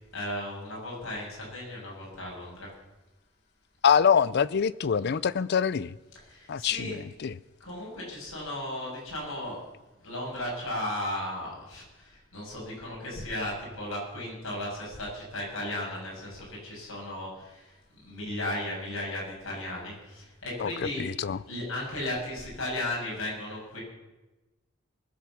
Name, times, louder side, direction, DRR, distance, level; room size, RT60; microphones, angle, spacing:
voice 1, 0.1-2.7 5.0-5.1 6.3-7.0 7.6-9.6 10.0-21.1 21.5-23.8, left 1 dB, 80° left, 7.1 m, -35 dB
voice 2, 3.8-6.0 6.5-7.4 20.6-21.4, left 7 dB, 55° left, 0.5 m, -25 dB
20.5 x 7.7 x 7.0 m
head